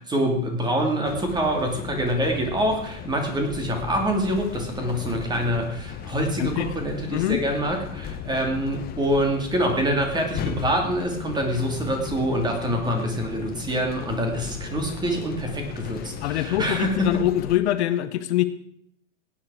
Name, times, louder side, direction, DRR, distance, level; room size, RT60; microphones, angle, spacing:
voice 1, 0.0-17.1, equal, 10° right, 3 dB, 2.6 m, -25 dB
sound 1, 1.0-17.6, left 8 dB, 25° left, 1.2 m, -37 dB
voice 2, 6.4-6.7 7.1-7.4 16.2-18.4, left 13 dB, 55° left, 12 dB, 1.0 m, -24 dB
17.0 x 9.6 x 4.9 m, 0.70 s
hypercardioid pair, 140°, 39 cm